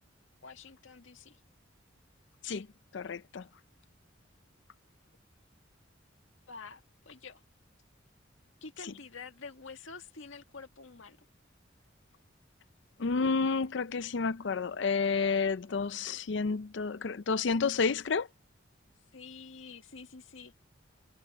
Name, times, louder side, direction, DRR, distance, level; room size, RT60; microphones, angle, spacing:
voice 1, 0.4-1.4 6.5-7.4 8.6-11.3 19.1-20.5, left 4 dB, 80° left, 1.9 m, -48 dB
voice 2, 2.9-3.5 13.0-18.3, left 4 dB, 65° left, 0.5 m, -30 dB
head